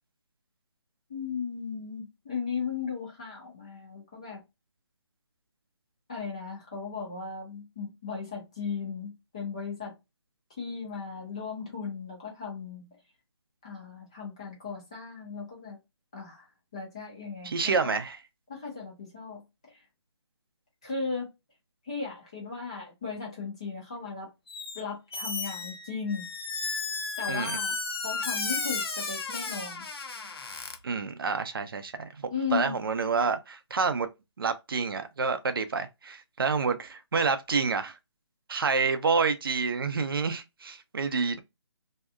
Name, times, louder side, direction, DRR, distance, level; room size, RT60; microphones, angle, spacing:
voice 1, 1.1-4.4 6.1-9.9 10.6-13.0 13.6-15.8 16.1-16.5 16.7-18.0 18.5-19.8 20.8-21.3 21.8-24.3 24.7-26.3 27.2-27.8 28.0-29.9 32.3-32.8, left 5 dB, 15° left, 0.5 m, -36 dB
voice 2, 17.4-18.2 27.3-27.6 30.8-34.1 34.4-38.0 38.5-41.4, right 5 dB, 50° right, 0.5 m, -28 dB
Squeak, 24.5-24.8 25.1-30.8, left 4 dB, 55° left, 0.6 m, -33 dB
2.7 x 2.3 x 2.2 m
hypercardioid pair, 170°, 15 cm